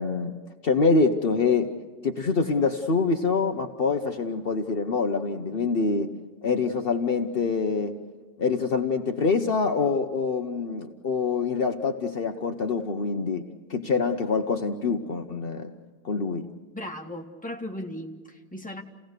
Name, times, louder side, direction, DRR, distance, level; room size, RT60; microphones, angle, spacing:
voice 1, 0.0-6.1 6.4-7.9 8.4-15.7 16.0-16.5, left 4 dB, 60° left, 4 dB, 0.6 m, -25 dB
voice 2, 16.7-18.8, left 1 dB, 5° left, 1 dB, 1.6 m, -37 dB
29.5 x 17.5 x 6.6 m, 1.5 s
omnidirectional pair, 2.4 m